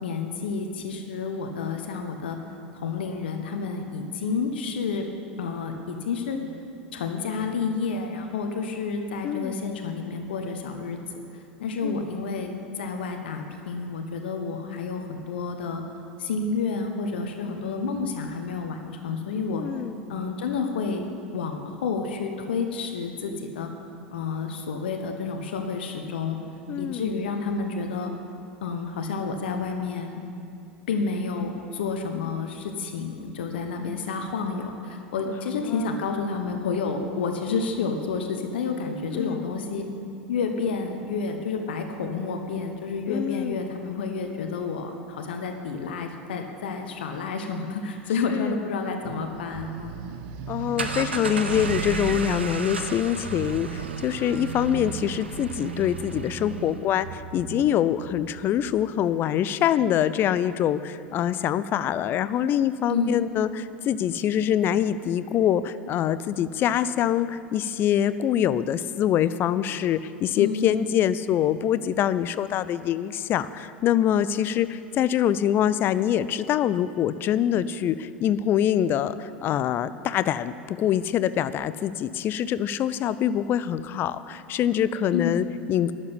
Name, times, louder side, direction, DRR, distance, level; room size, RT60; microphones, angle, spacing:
voice 1, 0.0-2.4 2.7-5.1 5.4-6.4 6.9-11.0 11.3-15.8 16.2-19.6 20.1-21.1 21.3-23.7 24.1-26.4 26.8-28.1 28.6-30.2 30.9-39.9 40.3-50.0 62.9-63.3 70.4-70.9 85.1-85.4, left 4 dB, 70° left, 4 dB, 1.2 m, -30 dB
voice 2, 9.2-9.6 11.8-12.0 19.5-20.0 26.7-27.1 35.3-35.9 39.1-39.5 43.1-43.6 48.3-48.6 50.5-85.9, left 10 dB, 40° left, 15 dB, 0.5 m, -25 dB
sound 1, 49.0-59.8, right 9 dB, 55° right, 0.7 m, -37 dB
sound 2, 50.5-56.9, right 4 dB, 85° right, 0.9 m, -34 dB
12.0 x 7.5 x 9.9 m, 2.7 s
figure-of-eight pair, 85°, 6 cm